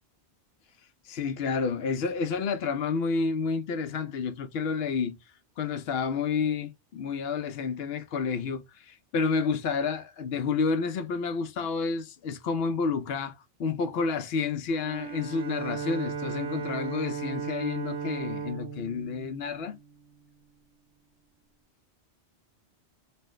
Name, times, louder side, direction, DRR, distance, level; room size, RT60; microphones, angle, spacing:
voice 1, 1.1-5.2 5.6-19.8, left 5 dB, 65° left, 0.7 m, -30 dB
Bowed string instrument, 14.7-20.2, right 6 dB, 85° right, 1.1 m, -36 dB
4.3 x 2.1 x 3.0 m
omnidirectional pair, 1.2 m